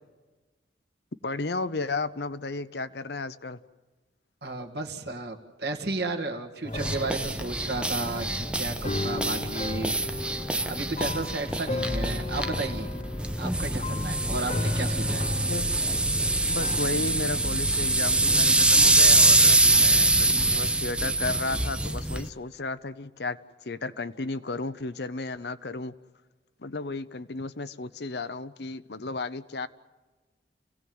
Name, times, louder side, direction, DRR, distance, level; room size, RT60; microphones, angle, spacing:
voice 1, 1.2-3.6 15.5-15.6 16.4-23.4 23.6-25.9 26.6-29.7, left 3 dB, 60° left, 13 dB, 0.8 m, -33 dB
voice 2, 4.4-10.0 10.6-12.9 13.4-15.2, right 2 dB, 60° right, 4 dB, 2.0 m, -33 dB
sound 1, 6.6-16.8, left 2 dB, 35° left, 1.0 m, -35 dB
sound 2, 6.7-22.3, right 2 dB, 5° right, 0.7 m, -24 dB
28.5 x 17.0 x 7.9 m, 1.3 s
head